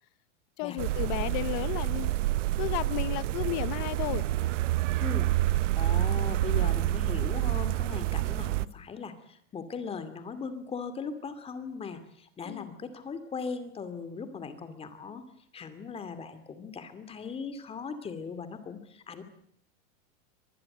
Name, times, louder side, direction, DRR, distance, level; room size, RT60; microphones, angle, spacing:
voice 1, 0.6-2.1 2.6-4.3 12.4-12.7, left 19 dB, 35° left, 0.9 m, -33 dB
sound 1, 0.8-8.7, right 15 dB, 65° right, 1.0 m, -28 dB
voice 2, 5.8-15.2 15.5-19.2, left 5 dB, 15° left, 2.5 m, -39 dB
25.0 x 19.5 x 7.9 m
supercardioid pair, 160°, 40 cm